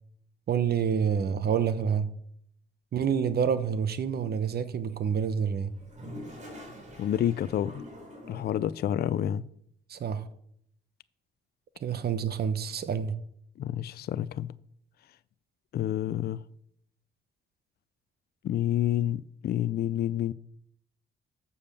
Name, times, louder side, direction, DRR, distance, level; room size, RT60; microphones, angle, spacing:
voice 1, 0.5-2.1 2.9-5.7 9.9-10.3 11.8-13.1, right 7 dB, 50° right, 1.0 m, -28 dB
Toilet flush, 5.7-8.7, equal, 35° right, 3.4 m, -45 dB
voice 2, 7.0-7.8 8.3-9.5 13.6-14.5 15.7-16.4 18.4-20.3, left 11 dB, 55° left, 0.4 m, -29 dB
7.3 x 6.9 x 6.7 m
cardioid pair, 90°, 20 cm